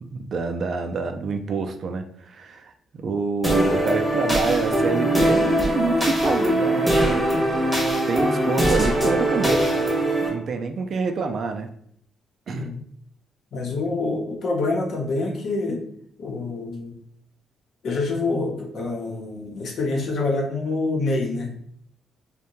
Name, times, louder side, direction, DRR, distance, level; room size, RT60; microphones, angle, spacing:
voice 1, 0.0-9.6 10.2-11.7 12.5-12.7, right 4 dB, 55° right, 6 dB, 0.3 m, -27 dB
sound 1, 3.4-10.3, right 1 dB, 5° left, 0.8 m, -21 dB
voice 2, 13.5-15.8 16.2-17.0 17.8-21.5, left 3 dB, 65° left, 0 dB, 0.7 m, -26 dB
2.6 x 2.1 x 2.9 m, 0.63 s
cardioid pair, 90°, 0 cm